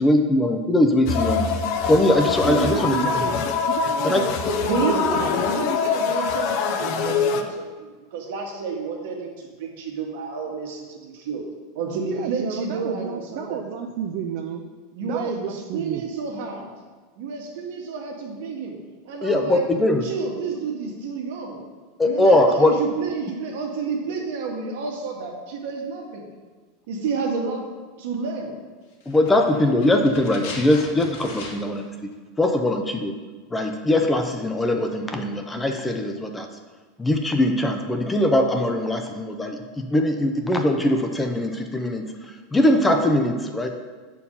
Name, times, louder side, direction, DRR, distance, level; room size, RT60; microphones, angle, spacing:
voice 1, 0.0-1.5 1.8-3.0 4.0-4.2 19.2-20.0 22.0-22.7 29.1-31.8 32.4-33.1 33.5-36.5 37.0-42.0 42.5-43.7, left 1 dB, 10° left, 5 dB, 0.5 m, -21 dB
sound 1, 1.1-7.4, left 6 dB, 50° left, 0.6 m, -24 dB
voice 2, 2.4-3.4 3.6-5.3 12.0-14.6 15.0-16.0, right 8 dB, 50° right, 3 dB, 0.5 m, -31 dB
voice 3, 4.6-11.4 11.7-13.6 14.9-16.7 17.2-18.8 19.0-19.6 20.0-21.6 22.0-26.3 26.9-27.6 28.0-28.5, right 4 dB, 70° right, 0 dB, 1.6 m, -30 dB
sound 2, 29.0-31.9 32.1-32.2, left 3 dB, 70° left, 1.8 m, -38 dB
7.0 x 4.5 x 5.5 m, 1.4 s
supercardioid pair, 145°, 0 cm